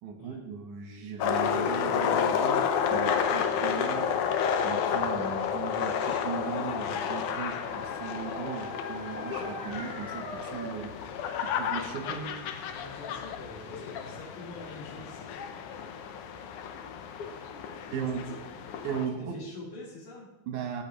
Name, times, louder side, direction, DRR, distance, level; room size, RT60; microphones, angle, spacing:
voice 1, 0.0-4.1 4.6-10.9 11.4-12.3 17.9-18.2 18.8-19.4 20.5-20.8, right 6 dB, 85° right, 3 dB, 2.7 m, -37 dB
sound 1, 1.2-19.1, left 7 dB, 75° left, 1.4 m, -31 dB
Dog, 5.9-10.9, left 1 dB, 50° left, 3.6 m, -44 dB
voice 2, 12.7-15.3 18.1-18.2 19.1-20.3, left 2 dB, 90° left, -7 dB, 3.7 m, -46 dB
14.5 x 7.5 x 3.3 m, 1.1 s
omnidirectional pair, 3.4 m